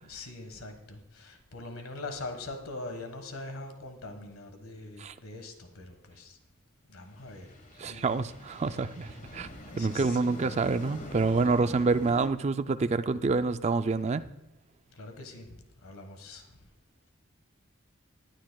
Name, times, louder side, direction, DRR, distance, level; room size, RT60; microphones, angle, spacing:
voice 1, 0.0-6.4 6.9-8.1 9.2-10.4 14.9-16.6, left 2 dB, 80° left, 1.4 m, -43 dB
sound 1, 7.0-12.3, left 1 dB, 35° left, 1.4 m, -45 dB
voice 2, 7.8-9.5 9.8-14.3, right 4 dB, 30° right, 0.3 m, -27 dB
19.5 x 9.7 x 2.3 m
head